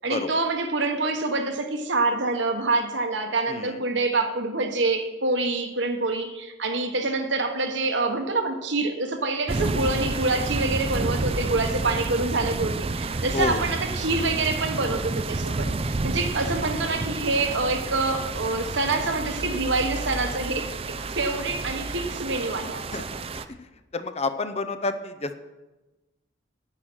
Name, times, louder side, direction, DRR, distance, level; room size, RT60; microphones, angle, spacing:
voice 1, 0.0-22.9, right 3 dB, 65° right, 5 dB, 1.4 m, -26 dB
voice 2, 3.5-3.8 13.3-13.6 22.9-23.0 23.6-25.4, left 3 dB, 30° left, 9 dB, 0.6 m, -29 dB
sound 1, 9.5-23.5, right 3 dB, 30° right, 0.5 m, -30 dB
9.7 x 9.2 x 6.3 m, 1.1 s
head